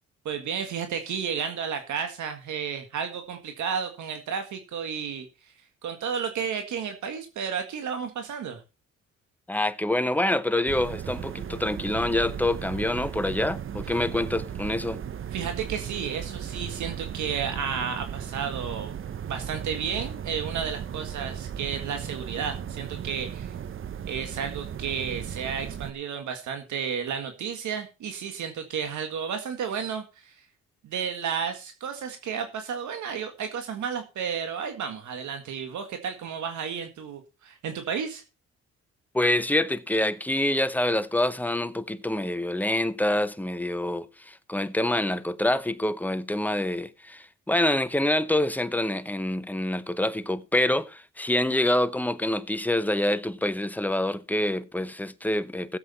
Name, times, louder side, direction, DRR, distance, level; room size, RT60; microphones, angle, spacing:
voice 1, 0.3-5.3 5.8-8.6 15.3-18.9 19.3-23.6 24.1-30.4 30.8-38.2, right 7 dB, 70° right, 1.8 m, -32 dB
voice 2, 9.5-15.0 39.1-55.8, left 1 dB, 5° left, 0.9 m, -26 dB
sound 1, 10.7-25.9, right 9 dB, 45° right, 0.8 m, -36 dB
16.0 x 8.0 x 4.2 m
cardioid pair, 90°, 30 cm